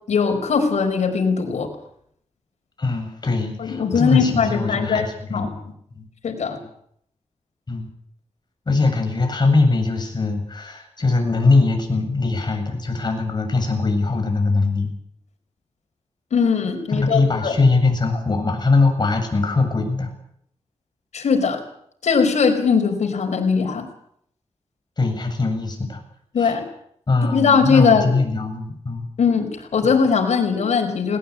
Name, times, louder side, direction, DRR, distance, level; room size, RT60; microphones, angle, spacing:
voice 1, 0.1-1.7 3.6-5.5 6.2-6.6 16.3-17.6 21.1-21.6 22.0-23.9 26.3-26.6 27.2-28.1 29.2-31.2, left 5 dB, 85° left, 3 dB, 5.1 m, -20 dB
voice 2, 2.8-5.5 5.9-6.0 7.7-7.9 8.7-14.9 16.9-20.1 25.0-26.0 26.4-26.6 27.1-29.0, left 3 dB, 40° left, 4 dB, 7.7 m, -21 dB
20.5 x 19.5 x 8.6 m, 0.70 s
wide cardioid pair, 85°, 11 cm